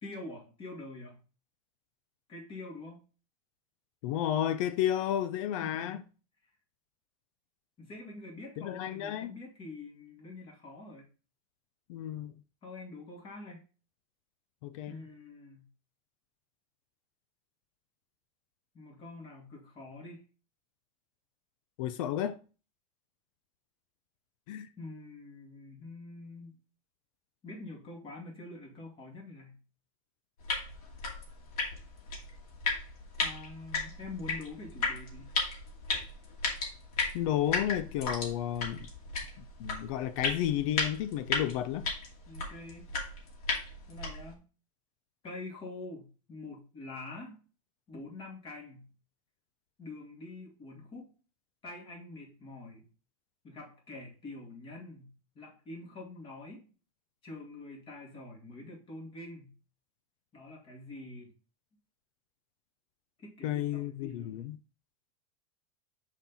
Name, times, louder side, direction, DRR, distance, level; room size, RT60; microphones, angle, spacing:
voice 1, 0.0-1.2 2.3-3.0 5.6-6.0 7.8-11.1 12.6-13.6 14.9-15.7 18.7-20.2 24.8-26.6 27.4-29.6 33.2-35.3 42.3-42.9 43.9-44.4 45.2-47.4 47.9-48.9 49.8-51.2 51.6-52.9 53.4-56.7 57.2-59.5 60.3-61.3 63.2-64.6, left 2 dB, 30° left, 2.5 m, -46 dB
voice 2, 4.0-6.0 8.6-9.3 11.9-12.3 14.6-15.0 21.8-22.4 24.5-24.7 37.1-38.9 39.4-41.9 63.4-64.6, left 11 dB, 65° left, 0.6 m, -32 dB
sound 1, 30.4-44.3, left 4 dB, 85° left, 2.5 m, -35 dB
5.9 x 4.5 x 4.1 m
supercardioid pair, 140°, 19 cm